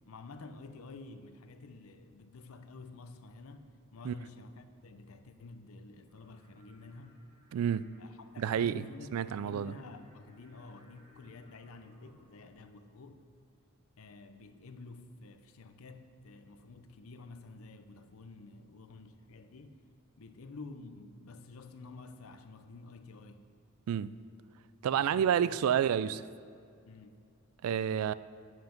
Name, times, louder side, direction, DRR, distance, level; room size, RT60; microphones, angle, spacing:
voice 1, 0.1-7.2 8.0-13.3 14.0-19.8 20.2-23.5 24.9-25.3 25.6-25.8 26.9-27.2, left 3 dB, 70° left, 0.6 m, -50 dB
Singing, 6.1-12.2, equal, 25° right, 2.4 m, -64 dB
voice 2, 7.5-7.9 8.4-8.8 9.1-9.7 23.9-24.1 24.8-26.2 27.6-28.1, right 9 dB, 75° right, 0.3 m, -29 dB
8.0 x 7.9 x 5.2 m
head